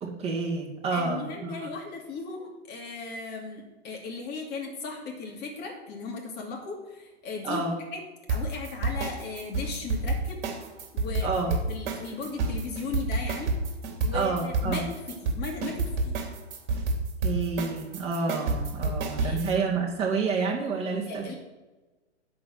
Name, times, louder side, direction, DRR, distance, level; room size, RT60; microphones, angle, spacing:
voice 1, 0.0-1.7 7.4-7.8 11.2-11.5 14.1-14.8 17.2-21.3, right 4 dB, 15° right, -3 dB, 2.3 m, -29 dB
voice 2, 0.9-7.7 7.9-8.0 8.3-10.4 10.9-13.5 14.0-16.2 18.8-19.4 21.1-21.3, left 4 dB, 30° left, 1 dB, 2.7 m, -37 dB
sound 1, 8.3-19.5, right 3 dB, 45° right, 3.4 m, -29 dB
11.0 x 4.6 x 7.6 m, 1.2 s
hypercardioid pair, 135°, 36 cm